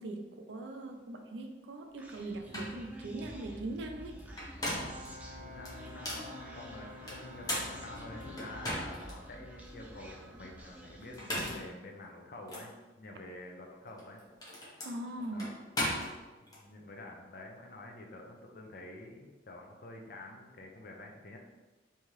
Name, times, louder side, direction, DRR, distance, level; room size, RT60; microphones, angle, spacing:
voice 1, 0.0-4.2 14.8-15.5, right 2 dB, 75° right, 5 dB, 0.4 m, -40 dB
Human voice, 2.0-11.5, right 1 dB, 10° right, 0.3 m, -49 dB
sound 1, 2.1-2.2 2.5-2.8 4.2-5.1 5.6-6.3 7.1-9.1 9.6-9.7 11.0-11.7 12.5-12.7 13.9-16.6, left 1 dB, 20° left, 0.8 m, -37 dB
Brass instrument, 4.6-8.8, left 1 dB, 40° right, 0.7 m, -49 dB
voice 2, 5.3-14.2 15.3-15.5 16.4-21.4, left 2 dB, 55° left, 1 dB, 0.5 m, -48 dB
3.5 x 2.8 x 3.1 m, 1.2 s
head